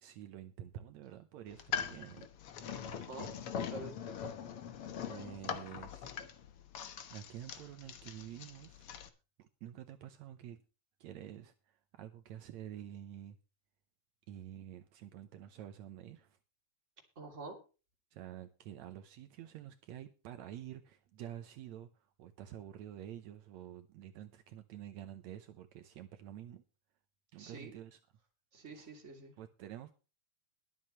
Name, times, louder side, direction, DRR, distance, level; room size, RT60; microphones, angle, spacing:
voice 1, 0.0-2.3 5.1-6.1 7.1-9.1 9.4-10.6 11.0-13.4 14.3-16.4 18.1-26.6 27.3-28.0 28.7-28.9 29.4-29.9, right 11 dB, 75° right, 8 dB, 2.1 m, -49 dB
sound 1, 1.5-9.1, left 8 dB, 60° left, 1.9 m, -42 dB
voice 2, 2.9-4.0 17.2-17.6 27.4-27.7 28.5-29.3, right 3 dB, 25° right, 3 dB, 2.9 m, -47 dB
22.0 x 7.6 x 3.1 m, 0.33 s
omnidirectional pair, 3.4 m